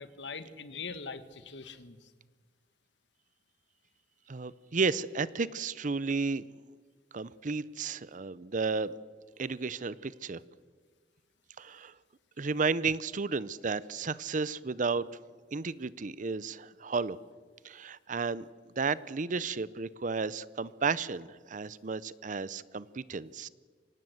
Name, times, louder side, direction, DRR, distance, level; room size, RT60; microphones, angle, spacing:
voice 1, 0.0-2.1, left 4 dB, 85° left, 12 dB, 1.5 m, -42 dB
voice 2, 4.3-6.4 7.1-8.9 9.4-10.4 11.6-11.9 12.4-15.1 15.5-17.2 17.6-18.4 18.8-23.5, right 4 dB, 45° right, 19 dB, 0.7 m, -33 dB
24.5 x 18.5 x 7.9 m, 1.5 s
head